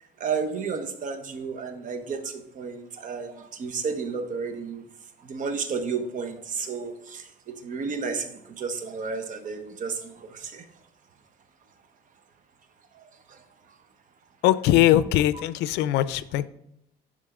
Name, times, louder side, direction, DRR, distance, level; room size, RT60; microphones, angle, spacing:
voice 1, 0.2-4.9 5.2-8.3 8.6-10.6 13.3-13.4, right 5 dB, 50° right, 7 dB, 1.1 m, -32 dB
voice 2, 14.4-16.5, left 13 dB, 90° left, 16 dB, 0.4 m, -21 dB
9.9 x 3.7 x 3.7 m, 0.80 s
cardioid pair, 110°, 17 cm